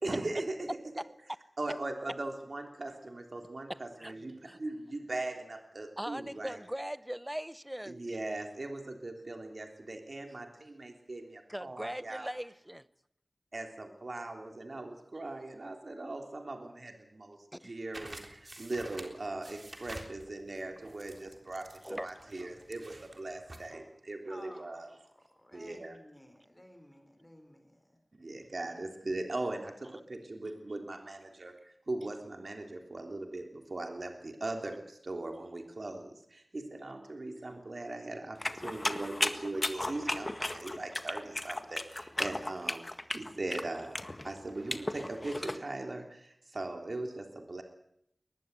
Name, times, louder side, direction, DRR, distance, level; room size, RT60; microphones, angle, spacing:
voice 1, 0.0-0.6 1.6-6.6 7.9-12.3 13.5-24.9 25.5-26.0 28.1-42.8 43.1-44.0 44.2-47.6, right 2 dB, 70° right, 3.4 m, -40 dB
voice 2, 6.0-8.0 11.5-12.8 17.6-17.7 21.8-22.1, equal, 10° right, 1.0 m, -39 dB
sound 1, 17.9-23.7, right 2 dB, 55° right, 3.6 m, -49 dB
voice 3, 24.3-25.0 25.2-28.0, left 1 dB, 15° left, 4.5 m, -54 dB
sound 2, 38.4-45.6, left 1 dB, 35° left, 1.7 m, -35 dB
22.0 x 20.0 x 8.3 m
wide cardioid pair, 65°, 0 cm